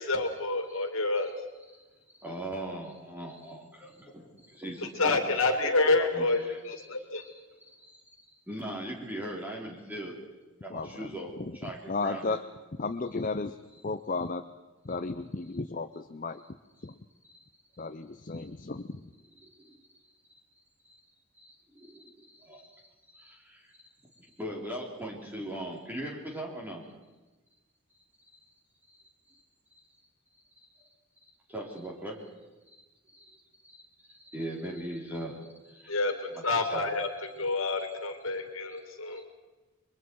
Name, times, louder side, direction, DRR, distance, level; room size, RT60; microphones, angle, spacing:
voice 1, 0.0-1.3 5.0-7.2 35.9-36.1 36.4-37.1 37.4-39.2, left 3 dB, 70° left, 5 dB, 2.6 m, -28 dB
voice 2, 2.2-5.2 5.5-6.5 8.5-10.2 10.6-12.4 19.5-19.8 21.4-22.7 23.1-23.7 24.2-26.9 31.5-32.2 33.1-33.2 33.6-33.8 34.1-35.4 35.7-35.9 36.7-36.8 39.2-39.3, right 1 dB, 10° right, -3 dB, 3.8 m, -39 dB
voice 3, 10.7-11.1 11.4-12.4 12.8-13.6 13.8-14.5 14.8-16.4 16.8-17.0 17.8-19.0, left 3 dB, 40° left, 9 dB, 0.6 m, -34 dB
29.0 x 23.0 x 4.7 m, 1.2 s
head